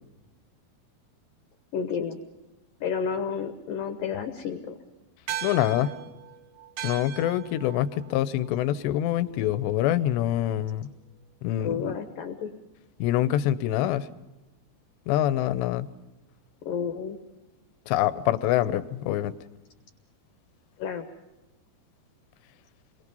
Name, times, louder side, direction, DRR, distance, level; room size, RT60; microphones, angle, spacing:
voice 1, 1.7-2.2 2.8-4.8 11.6-12.5 16.7-17.2 20.8-21.1, left 6 dB, 65° left, 8 dB, 2.5 m, -31 dB
sound 1, 5.3-10.0, right 10 dB, 70° right, 3.0 m, -40 dB
voice 2, 5.4-5.9 6.8-10.9 11.4-12.0 13.0-14.1 15.1-15.9 17.9-19.3, left 12 dB, 85° left, 14 dB, 3.1 m, -25 dB
29.0 x 22.5 x 5.4 m, 1.1 s
omnidirectional pair, 4.9 m